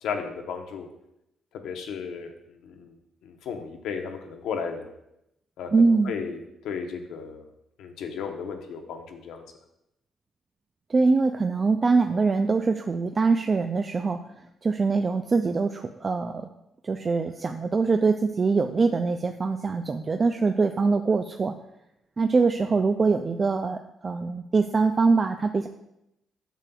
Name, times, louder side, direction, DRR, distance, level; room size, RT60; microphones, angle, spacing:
voice 1, 0.0-0.9 1.6-3.0 3.2-4.9 5.6-6.4 6.6-7.5 7.8-9.4, left 6 dB, 85° left, 5 dB, 0.8 m, -34 dB
voice 2, 5.7-6.1 10.9-14.2 14.6-16.5 16.8-21.5 22.2-25.7, right 4 dB, 35° right, 6 dB, 0.3 m, -23 dB
8.9 x 6.7 x 2.3 m, 0.85 s
cardioid pair, 90°, 0 cm